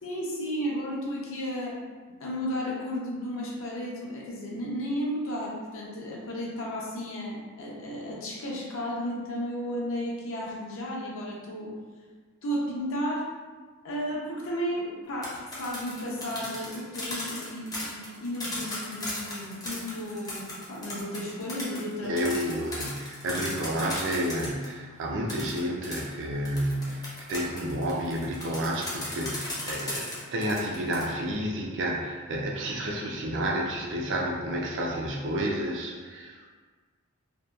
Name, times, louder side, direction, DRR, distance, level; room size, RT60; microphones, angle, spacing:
voice 1, 0.0-1.8 2.2-11.7 12.4-13.3 13.8-22.2, equal, 65° left, -4 dB, 0.6 m, -33 dB
sound 1, 15.1-24.7 25.3-31.0, left 2 dB, 15° left, 0.5 m, -37 dB
voice 2, 22.0-36.5, equal, 60° right, -1 dB, 0.4 m, -30 dB
2.7 x 2.2 x 2.3 m, 1.4 s
head